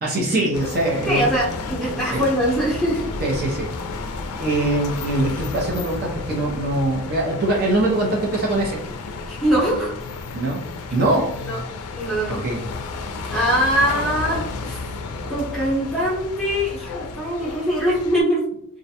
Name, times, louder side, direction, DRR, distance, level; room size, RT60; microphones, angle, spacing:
voice 1, 0.0-1.3 2.1-2.2 3.2-3.7 4.4-8.8 10.3-10.6 10.9-11.3 12.3-12.6, right 1 dB, 45° right, -2 dB, 0.4 m, -22 dB
sound 1, 0.5-18.2, left 4 dB, 85° left, 0.3 m, -32 dB
voice 2, 1.1-3.1 9.3-9.9 11.5-11.6 11.9-12.4 13.3-14.8 15.3-18.5, equal, ahead, -6 dB, 0.7 m, -22 dB
2.4 x 2.1 x 2.7 m, 0.69 s
head